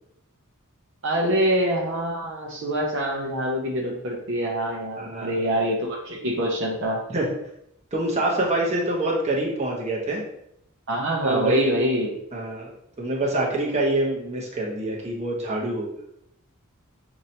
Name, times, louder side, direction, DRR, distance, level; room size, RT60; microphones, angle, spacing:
voice 1, 1.0-7.0 10.9-12.2, right 1 dB, 60° right, -1 dB, 0.9 m, -25 dB
voice 2, 5.0-5.3 7.1-7.3 7.9-10.2 11.2-11.7 12.3-12.7 13.0-15.9, right 2 dB, 30° right, -3 dB, 1.0 m, -25 dB
6.4 x 2.9 x 2.8 m, 0.77 s
head